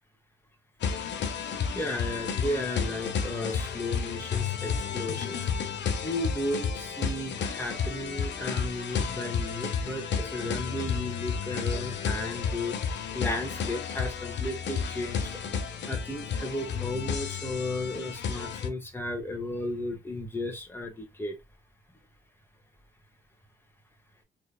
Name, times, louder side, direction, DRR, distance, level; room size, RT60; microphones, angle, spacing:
sound 1, 0.8-18.7, left 6 dB, 60° left, 1.1 m, -32 dB
voice 1, 1.7-5.4 6.0-12.8 13.1-15.3 15.9-21.4, left 1 dB, 10° left, 1.7 m, -34 dB
3.5 x 3.4 x 2.3 m
cardioid pair, 90°, 20 cm